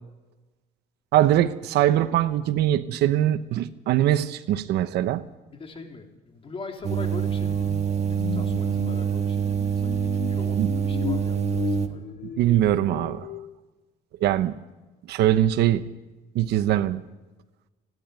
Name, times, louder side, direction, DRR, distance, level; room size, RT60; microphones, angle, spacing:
voice 1, 1.1-5.3 10.6-10.7 12.4-13.3 14.2-14.5 15.1-15.8 16.3-17.0, right 12 dB, 75° right, 1.0 m, -22 dB
voice 2, 5.5-7.7 8.1-12.2, left 4 dB, 35° left, 3.6 m, -41 dB
sound 1, 6.8-11.9, right 8 dB, 40° right, 1.7 m, -25 dB
sound 2, 7.4-13.4, left 10 dB, 60° left, 1.3 m, -36 dB
30.0 x 11.0 x 9.5 m
cardioid pair, 110°, 17 cm